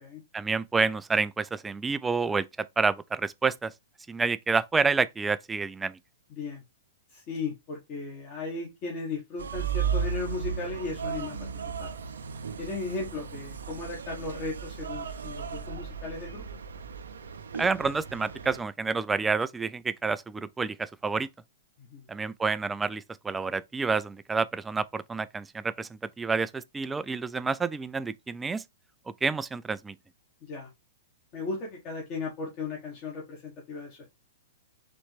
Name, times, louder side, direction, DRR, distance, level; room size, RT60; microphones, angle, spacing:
voice 1, 0.3-3.7 4.1-6.0 17.6-21.3 22.1-25.9 26.2-28.6 29.2-30.0, right 4 dB, 10° right, 0.3 m, -29 dB
voice 2, 6.3-6.6 7.1-11.5 11.8-11.9 12.6-16.5 21.8-22.1 30.4-30.7 31.3-34.1, left 3 dB, 40° left, 1.4 m, -36 dB
sound 1, 9.4-18.6, right 7 dB, 80° right, 0.6 m, -35 dB
4.1 x 3.0 x 3.3 m
hypercardioid pair, 115°, 0 cm